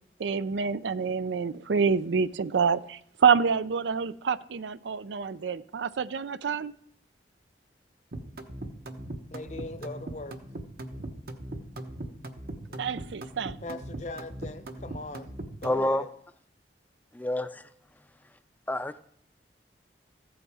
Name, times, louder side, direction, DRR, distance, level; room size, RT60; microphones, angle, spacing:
voice 1, 0.2-6.7 12.8-13.6, right 6 dB, 85° right, 0.5 m, -27 dB
sound 1, 8.1-15.9, right 1 dB, 55° right, 1.0 m, -39 dB
voice 2, 9.3-10.4 12.7-12.9 13.6-15.3 15.6-16.1, left 2 dB, 40° left, 0.8 m, -40 dB
voice 3, 15.6-16.0 17.1-17.7 18.7-19.0, left 1 dB, 10° left, 0.4 m, -28 dB
14.5 x 8.0 x 4.8 m
head